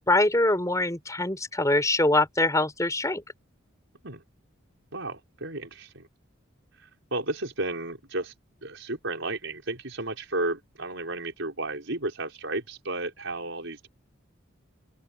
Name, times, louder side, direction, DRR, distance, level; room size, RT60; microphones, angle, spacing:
voice 1, 0.1-3.2, left 2 dB, 15° left, 3.8 m, -23 dB
voice 2, 4.9-6.1 6.8-8.3 8.6-13.9, right 2 dB, 65° right, 5.5 m, -33 dB
open air
head